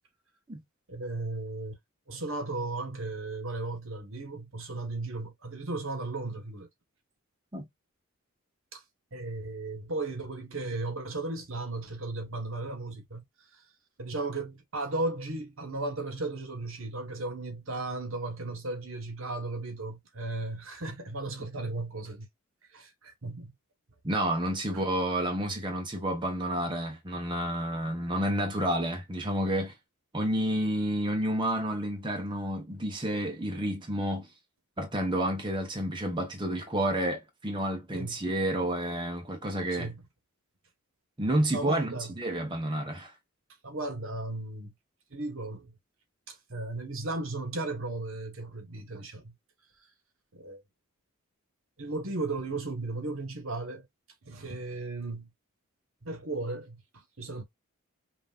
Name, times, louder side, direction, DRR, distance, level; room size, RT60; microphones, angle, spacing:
voice 1, 0.9-1.8 2.1-6.7 8.7-8.8 9.1-13.2 14.0-22.3 22.7-23.5 24.7-24.8 37.9-38.2 39.7-40.0 41.5-42.1 43.6-44.7 45.1-45.7 46.3-49.3 50.3-50.6 51.8-53.9 54.2-55.3 56.0-57.4, right 2 dB, 60° right, 1.2 m, -35 dB
voice 2, 24.0-29.7 30.1-34.3 34.8-39.9 41.2-43.1, right 1 dB, 20° right, 0.9 m, -30 dB
5.7 x 2.7 x 2.4 m
head